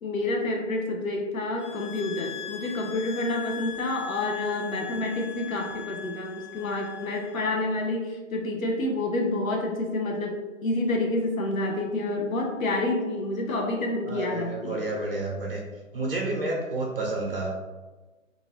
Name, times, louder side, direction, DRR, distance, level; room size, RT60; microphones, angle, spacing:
voice 1, 0.0-14.8, left 2 dB, 80° left, 1 dB, 0.8 m, -28 dB
sound 1, 1.6-7.4, left 8 dB, 15° left, 1.1 m, -40 dB
voice 2, 14.1-15.6 15.9-17.6, right 2 dB, 45° right, -1 dB, 0.7 m, -30 dB
2.6 x 2.5 x 3.2 m, 1.2 s
hypercardioid pair, 165°, 40 cm